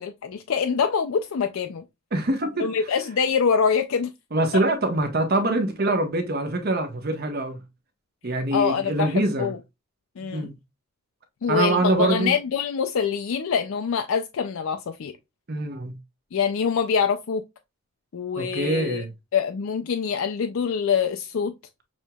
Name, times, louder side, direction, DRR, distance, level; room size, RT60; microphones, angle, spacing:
voice 1, 0.0-1.8 2.6-4.1 4.5-4.6 8.5-9.6 10.2-10.5 11.4-15.1 16.3-17.4 18.1-19.0 19.3-21.5, left 6 dB, 65° left, 0.4 m, -25 dB
voice 2, 2.1-2.7 4.3-7.6 8.2-9.5 10.3-10.5 11.5-12.3 15.5-16.0 18.4-19.1, right 2 dB, 45° right, 0.9 m, -24 dB
6.2 x 2.9 x 2.2 m
head